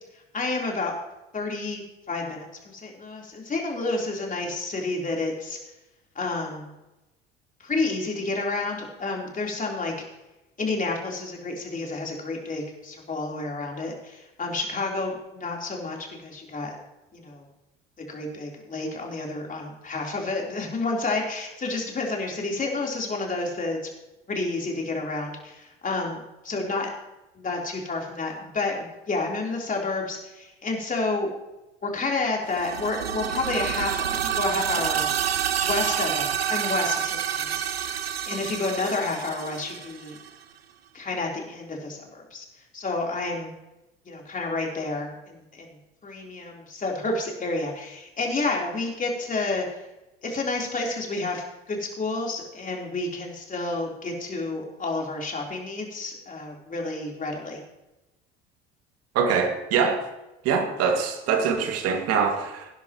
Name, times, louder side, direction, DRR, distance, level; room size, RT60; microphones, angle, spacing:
voice 1, 0.3-1.0 1.3-5.6 6.2-6.7 7.6-9.9 10.6-16.8 17.1-17.4 18.0-23.8 24.3-26.9 27.4-31.3 31.8-35.1 35.6-37.9 38.3-40.2 40.9-42.5 42.7-43.5 44.1-45.8 46.0-49.7 50.2-57.6, left 3 dB, 25° left, 0 dB, 3.7 m, -30 dB
sound 1, 32.5-40.3, right 9 dB, 85° right, 0.7 m, -28 dB
voice 2, 59.1-60.0 60.4-62.7, right 6 dB, 55° right, 5 dB, 2.2 m, -24 dB
18.5 x 10.5 x 3.0 m, 0.99 s
figure-of-eight pair, 65°, 30 cm